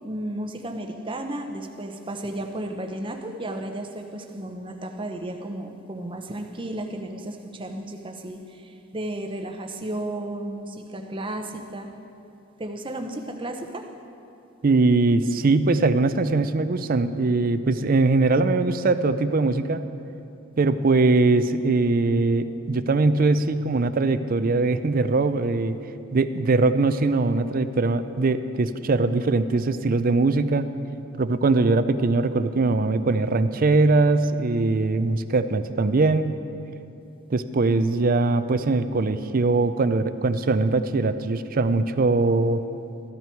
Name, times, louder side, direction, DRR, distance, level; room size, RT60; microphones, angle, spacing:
voice 1, 0.0-11.9 12.6-13.9, right 1 dB, 25° right, 4 dB, 0.9 m, -33 dB
voice 2, 14.6-19.8 20.6-25.8 26.1-30.7 31.2-36.4 37.3-42.6, right 3 dB, 45° right, 11 dB, 0.5 m, -21 dB
14.0 x 12.5 x 4.6 m, 2.8 s
head